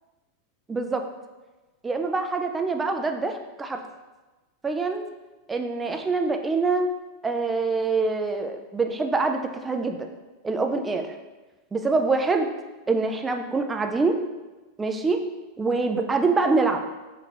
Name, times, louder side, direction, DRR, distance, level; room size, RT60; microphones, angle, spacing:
voice 1, 0.7-1.0 1.8-3.8 4.6-5.0 5.5-6.9 7.2-10.1 10.4-11.2 11.7-12.5 12.9-14.2 14.8-15.2 15.6-16.8, right 3 dB, 15° right, 5 dB, 0.4 m, -25 dB
4.4 x 2.4 x 3.0 m, 1.2 s
hypercardioid pair, 95°, 0 cm